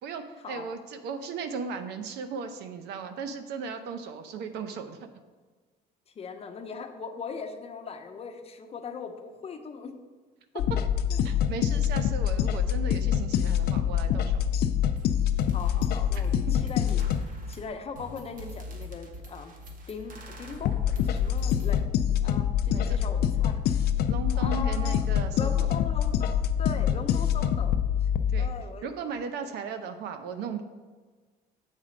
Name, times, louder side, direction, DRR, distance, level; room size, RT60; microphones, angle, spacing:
voice 1, 0.0-5.0 11.2-14.4 16.2-16.3 22.7-23.0 24.1-25.5 28.3-28.5 28.8-30.6, right 5 dB, 80° right, 8 dB, 0.7 m, -36 dB
voice 2, 6.1-9.9 10.5-10.7 11.1-11.2 15.5-19.6 19.9-21.9 22.2-23.6 24.3-25.0 25.4-28.1 28.4-28.9, left 5 dB, 35° left, 6 dB, 0.7 m, -40 dB
sound 1, 10.6-17.2 20.6-28.5, left 9 dB, 70° left, 0.4 m, -25 dB
sound 2, 15.0-15.1 15.4-21.8, left 1 dB, 50° right, 1.1 m, -42 dB
7.4 x 4.2 x 5.0 m, 1.4 s
cardioid pair, 110°, 17 cm